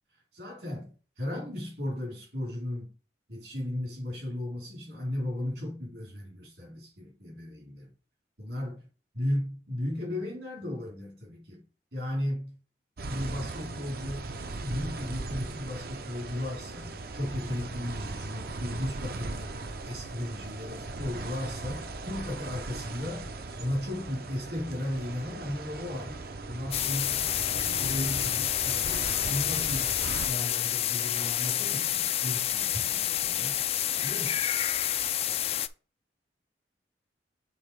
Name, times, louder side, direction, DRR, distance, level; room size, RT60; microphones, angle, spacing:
voice 1, 0.3-2.9 3.3-7.9 8.4-8.8 9.2-11.6 11.9-12.6 13.1-14.3 14.6-19.6 19.8-23.3 23.6-30.0 30.3-34.4, left 1 dB, 75° right, 3.5 m, -35 dB
sound 1, 13.0-30.3, right 3 dB, 60° right, 0.7 m, -38 dB
sound 2, 26.7-35.7, left 12 dB, 35° left, 0.3 m, -29 dB
6.9 x 3.6 x 4.7 m
head